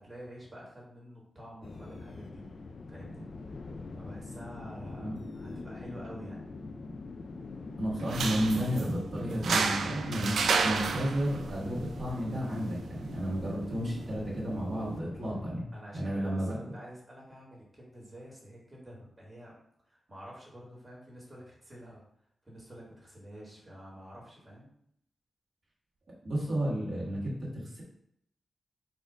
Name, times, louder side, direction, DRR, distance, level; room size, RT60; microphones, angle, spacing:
voice 1, 0.0-2.4 2.9-3.3 3.9-6.4 15.7-19.5 19.9-22.0 22.4-24.7, equal, 25° right, -5 dB, 1.8 m, -48 dB
sound 1, 1.6-15.5, left 3 dB, 60° left, 0.3 m, -44 dB
voice 2, 7.8-15.6 15.9-16.5 26.2-27.8, equal, 45° right, -7 dB, 1.7 m, -32 dB
sound 2, 8.0-15.0, right 5 dB, 90° right, 0.4 m, -33 dB
4.2 x 2.5 x 4.7 m, 0.72 s
wide cardioid pair, 105°, 0 cm